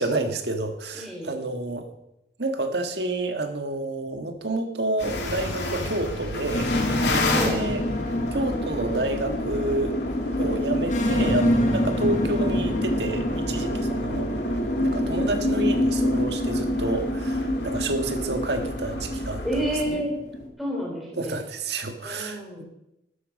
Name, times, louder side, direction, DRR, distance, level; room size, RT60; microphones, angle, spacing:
voice 1, 0.0-1.9 2.4-7.1 7.4-7.9 8.3-10.0 10.4-14.3 14.8-19.4 19.9-20.0 21.2-22.6, right 2 dB, 75° right, 6 dB, 1.7 m, -29 dB
voice 2, 0.9-1.4 7.2-7.6 19.4-20.1 20.6-21.4 22.0-22.6, right 1 dB, ahead, -3 dB, 4.0 m, -30 dB
sound 1, 5.0-19.8, left 2 dB, 80° left, 2.5 m, -32 dB
sound 2, 6.5-20.5, left 1 dB, 45° left, 2.2 m, -26 dB
12.5 x 12.5 x 5.4 m, 0.86 s
head